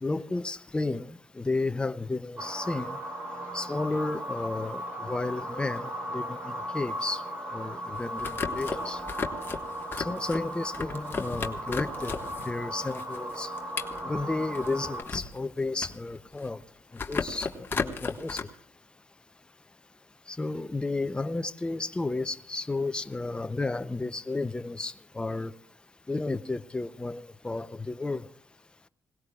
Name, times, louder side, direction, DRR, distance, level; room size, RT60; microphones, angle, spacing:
voice 1, 0.0-3.0 3.5-7.2 7.5-9.0 10.0-12.2 12.4-13.5 14.0-16.6 17.1-18.4 20.3-25.5 26.1-28.2, left 2 dB, 15° left, 0.6 m, -32 dB
sound 1, 2.4-15.0, equal, 30° right, 4.0 m, -36 dB
sound 2, 7.9-12.5 12.8-15.4 15.7-16.6 16.9-18.4, left 5 dB, 35° left, 1.5 m, -34 dB
26.5 x 18.5 x 2.4 m
cardioid pair, 125°, 6 cm